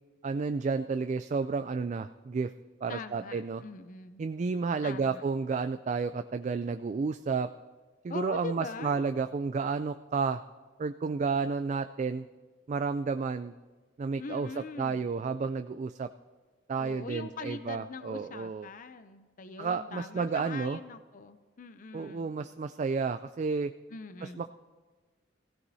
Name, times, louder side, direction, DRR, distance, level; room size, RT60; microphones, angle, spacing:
voice 1, 0.2-2.5 2.8-3.6 4.2-7.5 8.0-10.4 10.8-12.3 12.7-13.5 14.0-16.1 16.7-18.7 19.6-20.8 21.9-23.7 24.2-24.5, right 5 dB, 40° right, 9 dB, 0.3 m, -31 dB
voice 2, 2.9-4.2 4.8-5.2 8.1-9.0 14.2-15.0 16.8-22.3 23.9-24.5, left 4 dB, 45° left, 10 dB, 0.5 m, -42 dB
23.0 x 16.0 x 2.7 m, 1.3 s
head